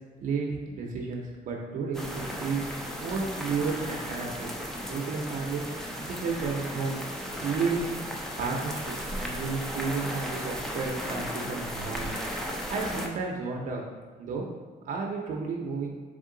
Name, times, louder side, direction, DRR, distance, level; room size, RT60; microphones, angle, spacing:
voice 1, 0.2-2.6 3.0-4.5 4.8-5.6 6.0-7.0 7.4-8.1 8.4-12.1 12.7-13.8 14.2-14.4 14.9-15.9, right 4 dB, 55° right, -1 dB, 0.6 m, -32 dB
sound 1, 1.9-13.1, equal, 5° left, 0.3 m, -35 dB
3.7 x 3.6 x 3.8 m, 1.5 s
cardioid pair, 175°, 16 cm